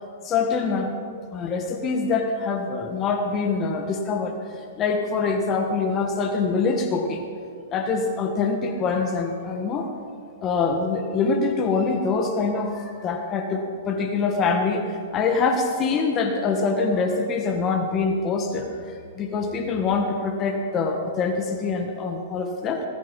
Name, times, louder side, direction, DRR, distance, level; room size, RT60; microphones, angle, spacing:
voice 1, 0.2-0.9 1.3-4.4 4.8-7.2 7.7-9.9 10.4-18.7 19.1-22.8, left 4 dB, 30° left, 4 dB, 1.7 m, -24 dB
21.0 x 10.0 x 5.4 m, 2.3 s
hypercardioid pair, 125°, 0 cm